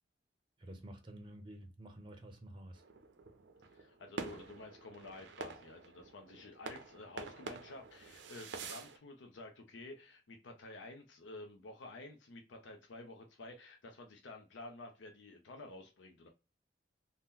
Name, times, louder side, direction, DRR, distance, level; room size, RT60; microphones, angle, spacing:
voice 1, 0.6-2.8, right 1 dB, 25° right, 0.5 m, -50 dB
sound 1, 2.8-9.0, right 4 dB, 80° right, 0.5 m, -48 dB
voice 2, 3.7-16.3, left 2 dB, 85° left, 0.5 m, -51 dB
2.8 x 2.1 x 3.5 m
head